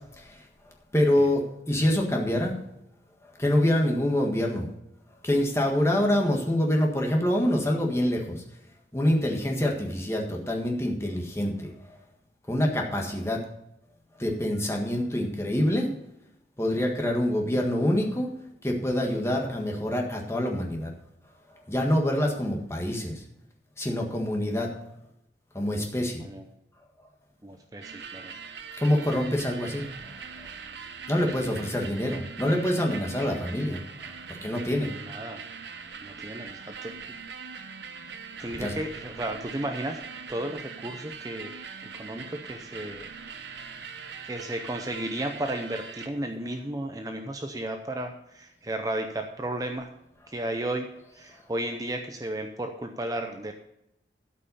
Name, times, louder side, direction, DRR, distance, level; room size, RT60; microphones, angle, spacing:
voice 1, 0.1-0.4 0.9-2.6 3.2-4.7 5.2-8.4 8.9-12.0 12.5-13.4 14.2-15.9 16.6-18.3 18.6-20.9 21.5-23.2 23.8-24.8 25.5-26.2 28.8-30.1 30.4-30.5 31.1-34.9 38.6-38.7, left 1 dB, 15° left, 1 dB, 1.6 m, -26 dB
voice 2, 27.4-28.3 31.4-31.5 35.0-35.4 36.0-37.2 38.4-40.0 40.3-41.6 41.9-43.1 44.2-49.9 50.3-53.5, right 1 dB, 20° right, 5 dB, 0.6 m, -34 dB
sound 1, 27.8-46.1, right 6 dB, 80° right, 0.9 m, -42 dB
12.5 x 5.6 x 6.9 m, 0.82 s
head